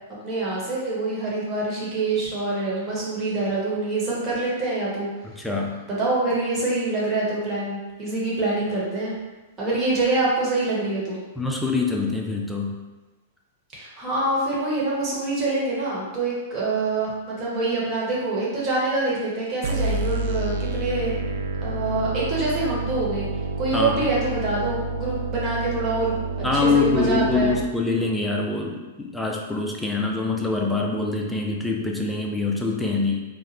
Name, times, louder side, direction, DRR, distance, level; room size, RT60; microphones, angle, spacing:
voice 1, 0.2-5.1 5.9-9.1 9.6-11.2 13.7-21.1 21.6-23.3 23.6-27.5, right 2 dB, 30° right, -6 dB, 1.2 m, -25 dB
voice 2, 5.2-5.7 11.4-12.8 23.7-24.0 26.4-33.2, left 3 dB, 5° left, -1 dB, 0.4 m, -24 dB
sound 1, 19.6-27.6, right 3 dB, 60° right, 0.3 m, -29 dB
3.7 x 2.1 x 2.9 m, 1.2 s
figure-of-eight pair, 105°, 0 cm